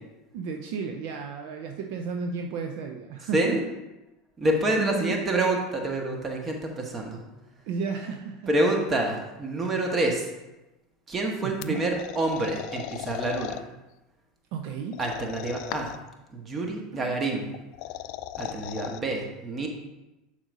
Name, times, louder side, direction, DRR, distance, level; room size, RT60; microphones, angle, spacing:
voice 1, 0.3-3.8 4.8-5.2 7.7-8.5 11.4-11.8 14.5-15.0 16.9-17.2, right 5 dB, 55° right, 4 dB, 0.6 m, -33 dB
voice 2, 4.4-7.2 8.5-10.2 11.1-13.6 15.0-15.9 16.3-17.5 18.4-19.7, right 2 dB, 25° right, 2 dB, 1.4 m, -27 dB
sound 1, 11.6-13.6 14.9-16.1 17.5-19.0, left 13 dB, 55° left, 0.3 m, -37 dB
10.5 x 4.9 x 2.7 m, 1.0 s
figure-of-eight pair, 75°, 0 cm